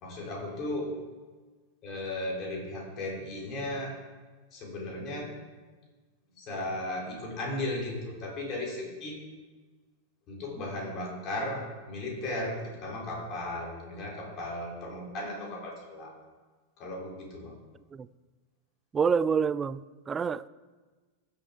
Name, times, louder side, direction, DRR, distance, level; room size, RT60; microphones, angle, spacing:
voice 1, 0.0-0.9 1.8-4.0 4.5-5.3 6.3-9.2 10.3-16.1 16.8-17.5, left 1 dB, 35° left, -2 dB, 3.5 m, -36 dB
voice 2, 18.9-20.5, right 6 dB, 20° right, 17 dB, 0.3 m, -27 dB
16.0 x 6.7 x 3.8 m, 1.3 s
figure-of-eight pair, 90°, 0 cm